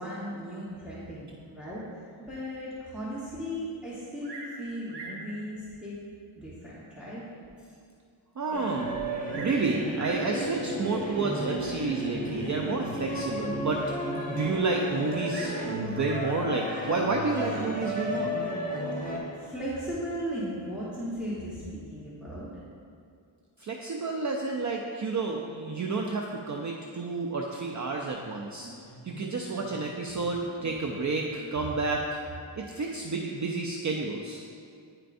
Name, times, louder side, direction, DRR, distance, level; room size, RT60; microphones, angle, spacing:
voice 1, 0.0-5.9 6.4-7.2 14.2-14.4 18.9-22.5, equal, ahead, -9 dB, 1.2 m, -37 dB
Bird vocalization bird call bird song, 4.2-4.6 4.9-5.3 6.1-6.2 6.8-6.9 7.4-7.5 7.7-7.8 8.9-9.6 9.9-10.3 11.3-11.6 15.3-16.3 17.4-17.8, right 2 dB, 55° right, 1.3 m, -42 dB
voice 2, 8.4-8.9 9.4-13.8 14.3-18.4 23.6-28.7 29.0-32.2 32.6-34.4, right 3 dB, 40° right, 0 dB, 0.5 m, -30 dB
sound 1, 8.5-19.2, right 1 dB, 15° left, 1.1 m, -33 dB
sound 2, 28.1-31.9, right 1 dB, 35° left, 1.5 m, -48 dB
10.5 x 4.5 x 2.6 m, 2.3 s
wide cardioid pair, 90°, 48 cm